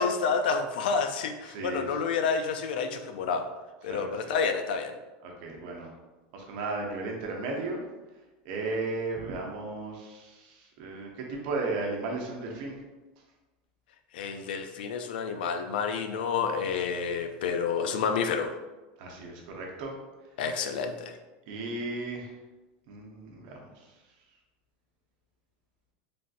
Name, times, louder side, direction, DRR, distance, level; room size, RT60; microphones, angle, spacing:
voice 1, 0.0-3.5 3.8-4.9 14.1-18.5 20.4-21.1, left 5 dB, 85° left, 7 dB, 0.3 m, -29 dB
voice 2, 1.5-2.0 3.9-4.3 5.2-5.9 6.3-7.8 8.4-12.8 19.0-20.0 21.5-22.4 22.9-24.0, right 3 dB, 60° right, 0 dB, 0.7 m, -35 dB
3.3 x 2.5 x 2.4 m, 1.1 s
supercardioid pair, 125°, 5 cm